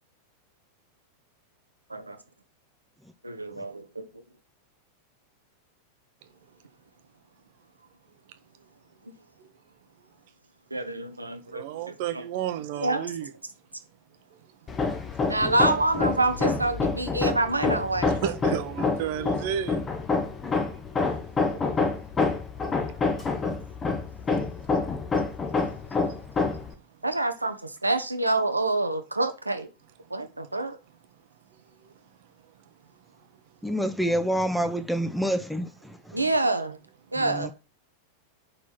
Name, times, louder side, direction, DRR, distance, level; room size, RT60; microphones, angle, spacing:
voice 1, 3.2-4.0 10.7-12.2 12.8-13.1 15.3-18.2 21.6-21.7 27.0-29.7 30.1-30.8 36.1-36.8 37.1-37.5, right 2 dB, 85° right, 0.8 m, -27 dB
voice 2, 11.5-13.3 18.2-19.8, right 9 dB, 50° right, 0.9 m, -31 dB
Hammer, 14.7-26.7, left 4 dB, 20° left, 1.1 m, -27 dB
voice 3, 33.6-36.2 37.2-37.5, equal, ahead, 0.8 m, -27 dB
5.5 x 4.9 x 6.0 m
figure-of-eight pair, 90°, 0 cm